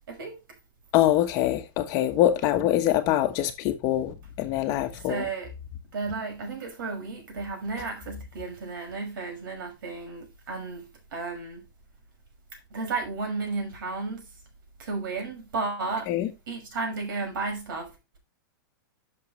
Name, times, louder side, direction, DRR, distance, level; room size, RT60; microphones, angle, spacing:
voice 1, 0.9-5.3 16.1-16.3, left 12 dB, 30° left, 1.2 m, -24 dB
voice 2, 5.1-5.5 5.9-11.6 12.7-14.2 14.8-16.1 16.5-17.9, right 4 dB, 70° right, 5.9 m, -33 dB
11.5 x 6.5 x 3.2 m
supercardioid pair, 165°, 11 cm